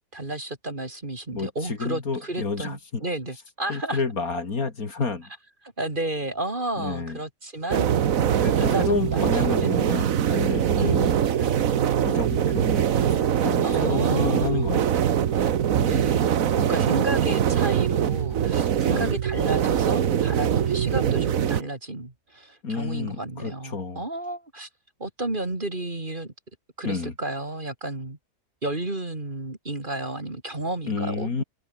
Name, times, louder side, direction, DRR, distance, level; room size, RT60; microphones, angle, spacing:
voice 1, 0.1-4.0 5.8-7.9 8.6-9.3 9.6-9.9 10.8-11.0 13.6-14.7 15.8-24.7 25.0-26.3 26.8-28.2 28.6-31.4, right 2 dB, 30° right, 3.2 m, -32 dB
voice 2, 1.3-3.0 3.7-5.3 6.8-7.2 8.4-11.1 11.4-15.1 15.8-16.0 18.9-19.1 22.6-24.0 26.8-27.1 30.9-31.4, left 4 dB, 60° left, 2.9 m, -30 dB
sound 1, 7.7-21.6, right 9 dB, 55° right, 1.3 m, -22 dB
omnidirectional pair, 1.8 m